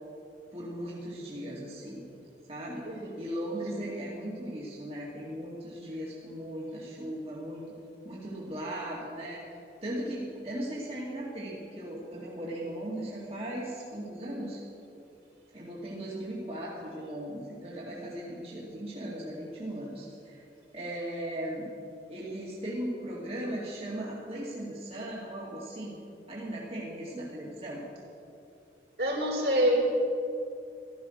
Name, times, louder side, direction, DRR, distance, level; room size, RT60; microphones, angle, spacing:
voice 1, 0.5-2.0 2.5-2.9 3.2-7.6 8.0-9.4 9.8-14.6 15.5-20.4 20.7-21.7 22.1-26.0 26.3-27.8, right 1 dB, 35° right, -5 dB, 2.2 m, -37 dB
voice 2, 2.8-3.2 29.0-29.8, equal, 65° right, -1 dB, 3.5 m, -26 dB
15.0 x 12.5 x 6.4 m, 2.7 s
head